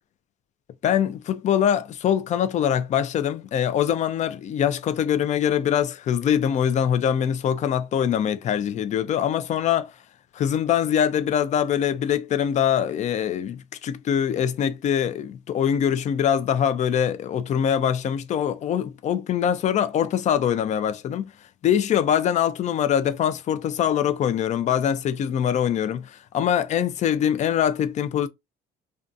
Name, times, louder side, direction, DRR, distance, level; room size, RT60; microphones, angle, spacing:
voice 1, 0.8-9.9 10.3-21.3 21.6-28.3, left 9 dB, 45° left, 0.4 m, -23 dB
2.5 x 2.3 x 2.5 m
cardioid pair, 110°, 17 cm